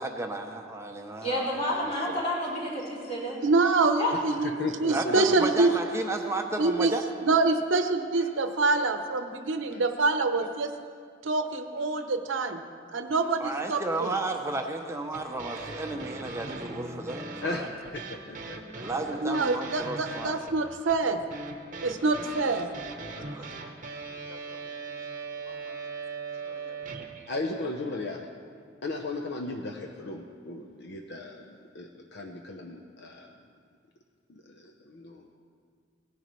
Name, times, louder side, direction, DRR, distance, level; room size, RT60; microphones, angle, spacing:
voice 1, 0.0-2.2 4.9-7.0 13.4-17.6 18.8-20.4 23.3-23.4, right 2 dB, 15° right, 3 dB, 0.6 m, -33 dB
voice 2, 1.2-3.4 4.0-4.1, left 1 dB, 35° left, -6 dB, 3.2 m, -30 dB
voice 3, 3.4-5.7 6.2-6.3 6.6-6.9 7.2-10.7 11.2-12.6 12.9-14.2 19.2-21.2 21.8-22.7, right 3 dB, 80° right, 7 dB, 0.8 m, -26 dB
voice 4, 4.4-5.4 17.4-18.6 27.3-28.3 28.8-33.3 34.3-35.3, left 2 dB, 60° left, 2 dB, 0.7 m, -36 dB
sound 1, 15.1-27.3, right 3 dB, 40° right, 0.9 m, -40 dB
voice 5, 23.1-23.7 24.0-24.6 24.9-25.0 25.4-25.8 26.4-26.7, left 2 dB, 85° left, -1 dB, 1.9 m, -52 dB
17.5 x 10.5 x 3.1 m, 2.1 s
head